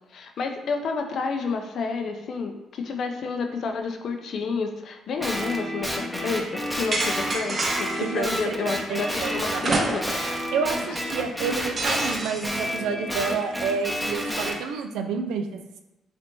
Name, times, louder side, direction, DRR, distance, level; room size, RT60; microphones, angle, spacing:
voice 1, 0.1-10.2 10.9-11.0, left 4 dB, 65° left, 5 dB, 0.4 m, -30 dB
Guitar, 5.2-9.7 10.0-14.6, equal, ahead, 0.6 m, -30 dB
sound 1, 6.9-8.1 9.6-10.3 10.7-10.8 11.8-12.6, right 2 dB, 40° right, 0.6 m, -27 dB
voice 2, 8.0-8.5 8.9-9.6 10.5-15.8, right 5 dB, 90° right, 6 dB, 0.3 m, -29 dB
3.3 x 2.6 x 2.9 m, 1.0 s
cardioid pair, 90°, 0 cm